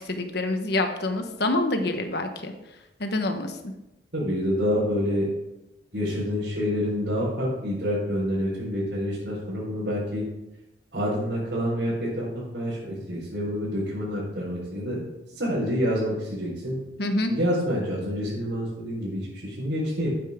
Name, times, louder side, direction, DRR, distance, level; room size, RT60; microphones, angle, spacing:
voice 1, 0.0-2.5 3.0-3.7 17.0-17.3, left 2 dB, 65° left, 6 dB, 1.2 m, -26 dB
voice 2, 4.1-5.3 5.9-10.2 10.9-15.0 15.3-16.8 17.3-20.1, equal, 75° right, -8 dB, 4.4 m, -27 dB
13.0 x 9.1 x 3.7 m, 0.95 s
head